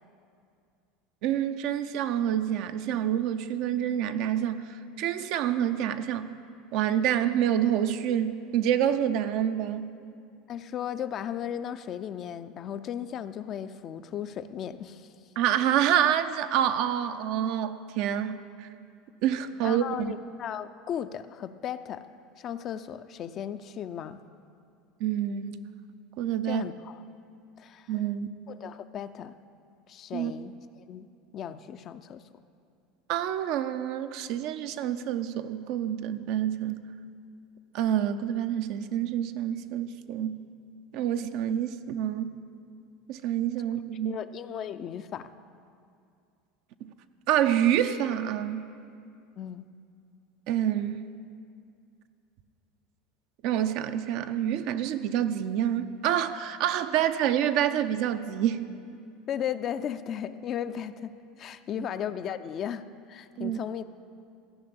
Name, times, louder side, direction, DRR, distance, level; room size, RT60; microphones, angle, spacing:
voice 1, 1.2-6.3 6.7-9.9 15.4-18.7 19.2-20.1 25.0-25.6 26.2-26.7 27.9-28.3 30.1-30.3 33.1-36.8 37.7-40.4 40.9-42.3 43.1-44.2 46.8-46.9 47.3-48.7 50.5-51.1 53.4-58.7 61.8-61.9 63.4-63.6, right 10 dB, 60° right, 9 dB, 0.6 m, -27 dB
voice 2, 10.5-15.1 19.6-22.1 22.4-24.2 26.4-27.0 27.6-27.9 28.5-29.3 29.9-31.1 31.3-32.2 44.0-45.3 49.4-49.7 59.3-63.8, left 9 dB, 45° left, 11 dB, 0.5 m, -36 dB
14.0 x 5.9 x 8.8 m, 2.4 s
hypercardioid pair, 90°, 0 cm